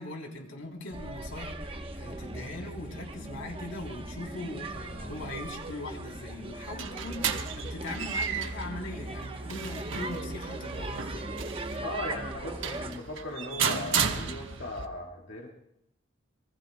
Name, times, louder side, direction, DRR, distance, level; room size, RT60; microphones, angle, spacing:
voice 1, 0.0-11.3, left 2 dB, 90° left, 1 dB, 3.3 m, -40 dB
sound 1, 0.9-13.0, right 2 dB, 25° right, 1.0 m, -39 dB
sound 2, 6.4-14.9, right 7 dB, 70° right, 1.2 m, -34 dB
voice 2, 11.8-15.5, left 1 dB, 60° left, -2 dB, 2.0 m, -38 dB
27.5 x 22.0 x 2.2 m, 0.80 s
head